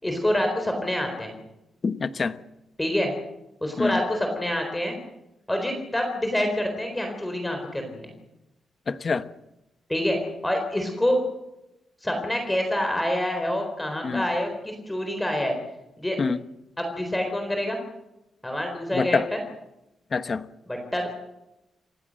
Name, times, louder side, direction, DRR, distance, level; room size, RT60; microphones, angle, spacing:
voice 1, 0.0-1.3 2.8-3.1 3.6-5.0 5.5-8.1 9.9-11.2 12.0-15.5 16.0-16.2 16.8-17.8 18.4-19.4 20.7-21.1, left 1 dB, 10° left, 3 dB, 4.0 m, -26 dB
voice 2, 1.8-2.4 3.8-4.0 8.9-9.3 14.0-14.3 16.2-16.4 18.9-19.3 20.1-20.5, left 4 dB, 35° left, 11 dB, 1.0 m, -25 dB
28.0 x 15.5 x 7.7 m, 0.90 s
wide cardioid pair, 160°, 0 cm